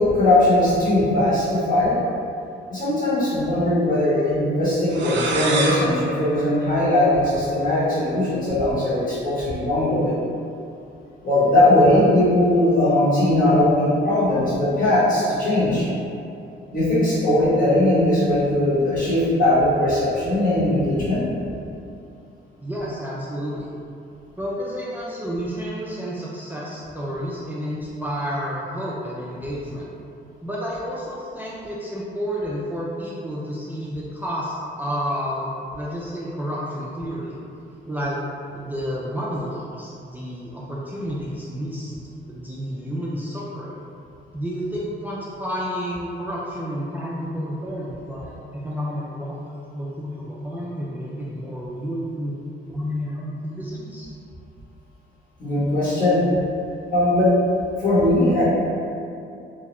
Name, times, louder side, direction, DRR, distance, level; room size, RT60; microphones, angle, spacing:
voice 1, 0.0-2.0 2.7-10.1 11.2-15.9 16.7-21.2 55.4-56.2 56.9-57.3 57.8-58.4, left 1 dB, 45° left, -10 dB, 1.4 m, -19 dB
sound 1, 4.9-7.5, right 2 dB, 65° right, 0.5 m, -28 dB
voice 2, 22.6-23.7 24.4-29.9 30.4-37.4 37.9-38.2 38.5-41.9 42.3-43.8 44.3-52.3 52.7-54.1, equal, 10° right, -7 dB, 0.3 m, -30 dB
2.8 x 2.3 x 3.1 m, 2.6 s
cardioid pair, 90°, 20 cm